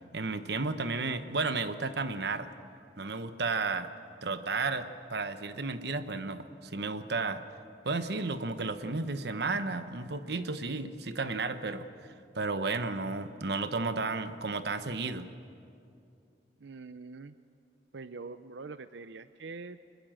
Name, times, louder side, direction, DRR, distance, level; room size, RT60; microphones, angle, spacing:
voice 1, 0.1-2.5 3.0-3.9 4.2-7.4 7.8-11.9 12.3-15.3, right 3 dB, 65° right, 10 dB, 1.0 m, -33 dB
voice 2, 16.6-17.4 17.9-19.8, right 4 dB, 85° right, 12 dB, 0.6 m, -44 dB
24.5 x 21.0 x 7.7 m, 2.5 s
head